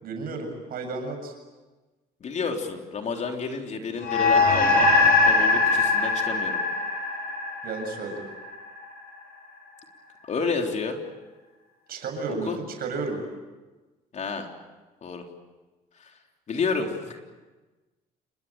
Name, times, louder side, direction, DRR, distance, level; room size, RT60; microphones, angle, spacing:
voice 1, 0.0-1.3 7.6-8.2 11.9-13.2, right 4 dB, 60° right, 4 dB, 7.3 m, -32 dB
voice 2, 2.2-6.6 10.2-11.0 12.4-12.6 14.1-14.5 15.0-15.3 16.0-16.1 16.5-17.2, left 4 dB, 45° left, 3 dB, 3.7 m, -30 dB
sound 1, 4.0-8.7, left 3 dB, 65° left, 7.1 m, -22 dB
28.5 x 21.5 x 9.0 m, 1.2 s
cardioid pair, 110°, 17 cm